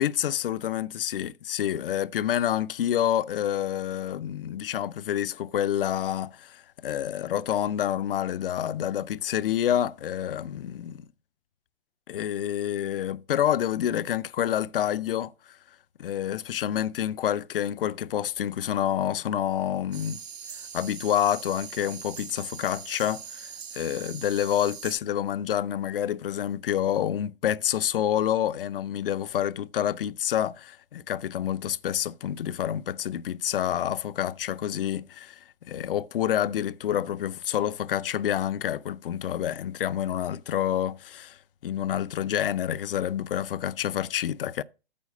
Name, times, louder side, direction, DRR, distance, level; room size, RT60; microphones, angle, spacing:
voice 1, 0.0-11.0 12.1-15.3 16.0-20.2 20.7-35.4 35.6-41.4 41.6-44.6, left 10 dB, 60° left, 0.5 m, -28 dB
sound 1, 19.9-25.0, right 7 dB, 75° right, 1.0 m, -41 dB
8.5 x 4.8 x 6.4 m
figure-of-eight pair, 120°, 31 cm